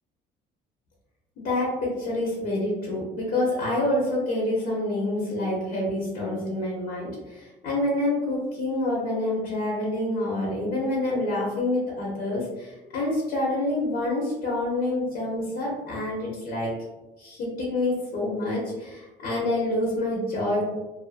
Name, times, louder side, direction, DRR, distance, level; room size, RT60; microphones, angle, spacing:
voice 1, 1.4-16.7 17.2-20.6, left 1 dB, 65° left, -4 dB, 0.8 m, -27 dB
2.6 x 2.5 x 2.5 m, 1.1 s
cardioid pair, 110°, 17 cm